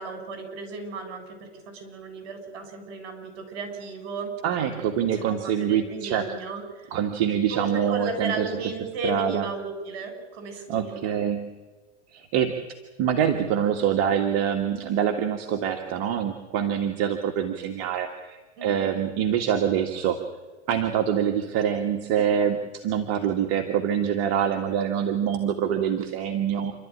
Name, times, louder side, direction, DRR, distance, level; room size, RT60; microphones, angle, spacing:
voice 1, 0.0-4.3 4.6-6.9 7.5-11.1 18.6-18.9, right 3 dB, 60° right, 6 dB, 6.8 m, -35 dB
voice 2, 4.4-6.3 6.9-8.5 9.0-9.5 10.7-11.5 12.1-12.6 13.0-20.2 20.7-26.7, right 8 dB, 45° right, 5 dB, 2.0 m, -25 dB
28.0 x 12.5 x 9.9 m, 1.3 s
hypercardioid pair, 125°, 35 cm